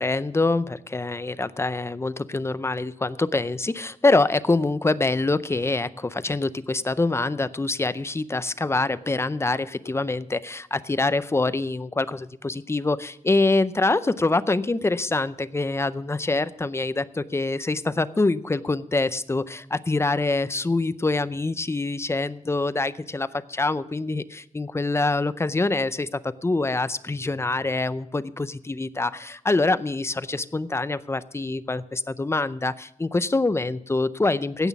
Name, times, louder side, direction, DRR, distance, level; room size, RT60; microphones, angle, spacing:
voice 1, 0.0-34.7, left 2 dB, 20° left, 15 dB, 0.5 m, -25 dB
16.0 x 6.1 x 6.9 m, 0.74 s
wide cardioid pair, 120°, 13 cm